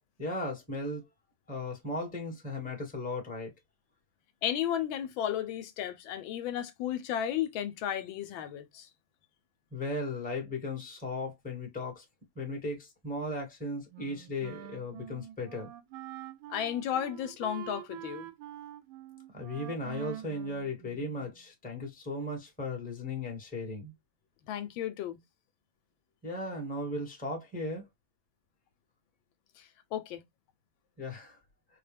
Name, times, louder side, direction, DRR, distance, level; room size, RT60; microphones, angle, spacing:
voice 1, 0.2-1.1 1.5-3.5 9.7-12.0 12.3-15.7 19.3-23.9 26.2-27.9 31.0-31.4, left 2 dB, 5° left, 1.0 m, -36 dB
voice 2, 4.4-8.9 16.5-18.3 24.5-25.2 29.6-30.2, left 10 dB, 80° left, 1.3 m, -34 dB
Wind instrument woodwind instrument, 13.9-21.4, right 13 dB, 80° right, 1.4 m, -46 dB
4.5 x 2.1 x 3.2 m
omnidirectional pair, 2.2 m